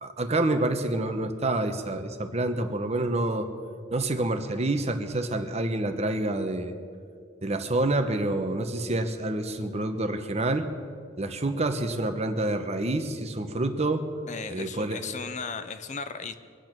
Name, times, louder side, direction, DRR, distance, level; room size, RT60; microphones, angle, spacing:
voice 1, 0.0-3.5 3.9-6.7 7.4-10.7 11.2-14.0 14.5-15.0, right 2 dB, 35° right, 7 dB, 1.0 m, -27 dB
voice 2, 14.3-16.3, left 5 dB, 40° left, 10 dB, 0.6 m, -36 dB
23.0 x 8.7 x 6.1 m, 2.2 s
head